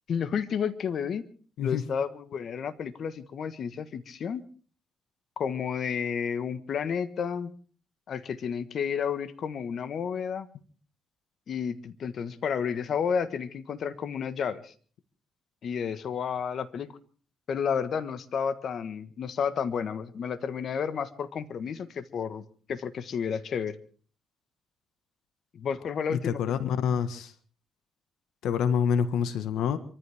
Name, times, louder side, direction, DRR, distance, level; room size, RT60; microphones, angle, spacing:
voice 1, 0.1-1.2 1.6-4.4 5.4-7.5 8.1-10.5 11.5-14.7 15.6-16.9 17.5-23.8 25.5-26.4, left 7 dB, 60° left, 12 dB, 1.4 m, -31 dB
voice 2, 26.1-27.3 28.4-29.8, left 7 dB, 80° left, 11 dB, 1.5 m, -27 dB
26.0 x 14.5 x 3.6 m, 0.42 s
cardioid pair, 90°, 0 cm